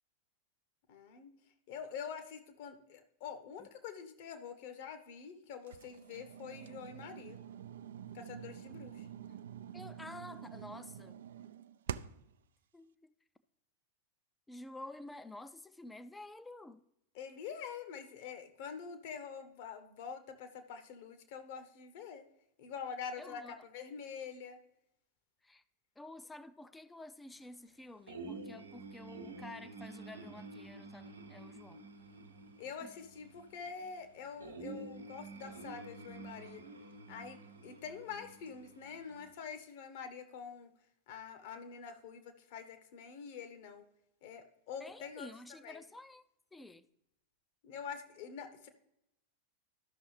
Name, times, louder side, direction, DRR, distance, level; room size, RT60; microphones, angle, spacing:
voice 1, 0.9-1.3 1.7-7.4 8.1-9.1 17.1-22.2 22.6-24.6 32.6-36.6 37.1-37.4 37.6-40.7 41.1-43.8 44.2-45.3 45.6-45.8 47.6-48.7, left 6 dB, 50° left, 1.0 m, -46 dB
sound 1, 5.7-12.3, right 9 dB, 60° right, 0.3 m, -47 dB
voice 2, 9.7-11.2 12.7-13.1 14.5-16.8 23.2-23.5 25.4-25.6 26.0-31.8 32.8-32.9 44.8-46.2 46.5-46.9, left 2 dB, 10° left, 0.5 m, -50 dB
sound 2, 28.1-39.3, right 3 dB, 75° right, 1.0 m, -49 dB
13.0 x 6.1 x 3.2 m
figure-of-eight pair, 90°, 0 cm